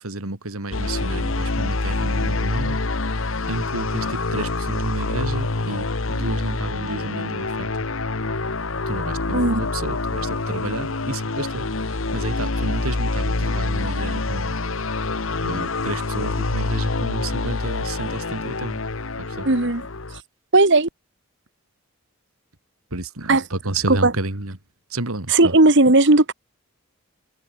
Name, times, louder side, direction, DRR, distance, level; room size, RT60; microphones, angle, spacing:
voice 1, 0.0-2.8 3.5-7.7 8.9-11.6 12.1-14.5 15.4-18.8 19.4-19.5 22.9-24.5 24.9-25.4, right 2 dB, 85° right, 3.0 m, -31 dB
sound 1, 0.7-20.2, left 3 dB, 70° left, 1.3 m, -26 dB
voice 2, 19.4-19.9 20.5-20.9 23.3-23.5 23.9-24.1 25.3-26.3, right 2 dB, 55° right, 1.8 m, -16 dB
open air
head